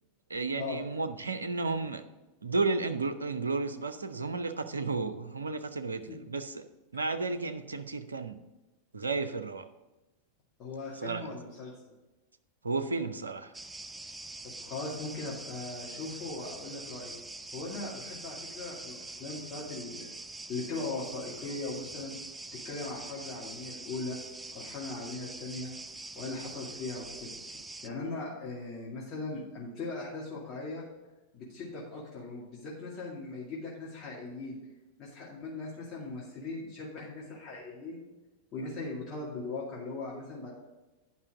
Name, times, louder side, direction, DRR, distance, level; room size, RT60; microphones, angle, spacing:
voice 1, 0.3-2.0 2.4-6.6 6.9-8.4 8.9-9.7 11.0-11.4 12.6-13.5, right 3 dB, 75° right, 9 dB, 0.6 m, -33 dB
voice 2, 10.6-11.9 14.4-17.2 17.5-20.1 20.5-22.1 22.6-24.2 24.5-25.7 26.2-27.4 27.8-30.8 31.3-34.6 35.0-38.0 38.5-40.5, left 3 dB, 30° left, -5 dB, 2.1 m, -39 dB
sound 1, 13.5-27.9, right 2 dB, 10° right, 0.4 m, -44 dB
9.8 x 5.5 x 4.8 m, 1.1 s
figure-of-eight pair, 90°, 0 cm